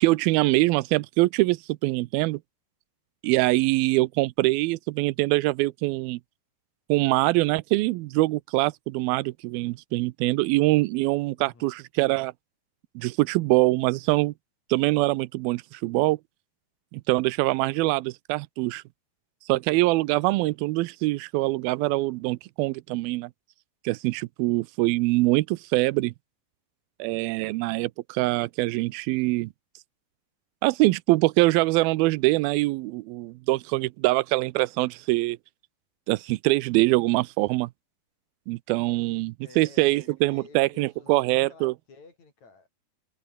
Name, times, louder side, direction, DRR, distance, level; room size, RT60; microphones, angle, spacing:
voice 1, 0.0-2.4 3.2-6.2 6.9-12.3 13.0-14.3 14.7-16.2 16.9-18.8 19.5-23.3 23.9-26.1 27.0-29.5 30.6-35.4 36.1-37.7 38.5-41.7, right 20 dB, 90° right, 2.5 m, -24 dB
voice 2, 11.4-11.7 39.4-42.7, left 4 dB, 50° left, 6.8 m, -51 dB
omnidirectional pair, 4.2 m